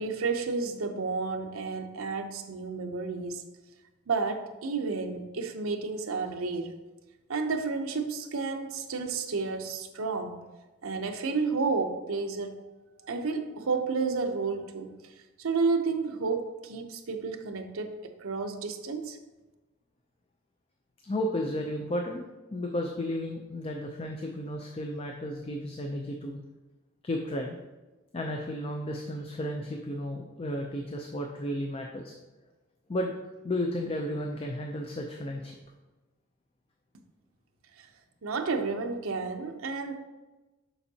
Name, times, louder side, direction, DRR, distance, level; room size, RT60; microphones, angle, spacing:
voice 1, 0.0-3.4 4.1-6.7 7.3-10.4 10.8-12.6 13.1-15.0 15.4-19.2 37.8-37.9 38.2-39.9, right 4 dB, 75° right, 5 dB, 0.6 m, -31 dB
voice 2, 21.0-22.2 22.5-26.4 27.0-27.6 28.1-32.1 32.9-33.1 33.4-35.6, left 1 dB, 25° left, 2 dB, 0.4 m, -33 dB
7.0 x 5.3 x 2.7 m, 1.1 s
head